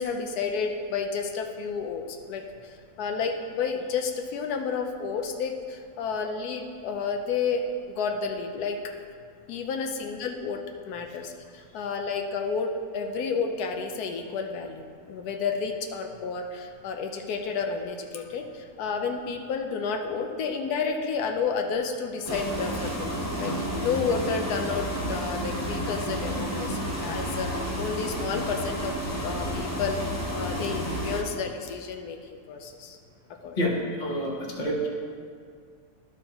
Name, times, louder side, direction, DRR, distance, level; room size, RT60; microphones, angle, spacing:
voice 1, 0.0-8.8 9.5-28.9 29.2-32.2 32.5-33.0 33.4-33.6, left 5 dB, 85° left, 4 dB, 1.2 m, -31 dB
sound 1, 22.3-31.2, equal, 15° left, 0.6 m, -31 dB
voice 2, 34.0-34.9, equal, 35° left, -2 dB, 1.1 m, -27 dB
12.0 x 6.3 x 2.9 m, 2.1 s
omnidirectional pair, 1.6 m